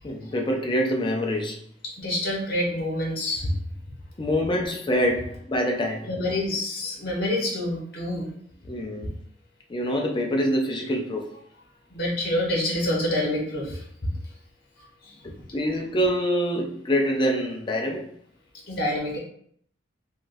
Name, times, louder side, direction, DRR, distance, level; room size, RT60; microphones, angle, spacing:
voice 1, 0.0-1.6 4.2-6.1 8.7-9.1 9.7-11.3 15.2-18.1, equal, 25° left, 0.5 m, -25 dB
voice 2, 1.8-3.5 6.0-8.3 11.9-13.8 15.0-15.1 18.7-19.2, left 1 dB, 55° left, 1.2 m, -27 dB
3.6 x 2.4 x 2.6 m
head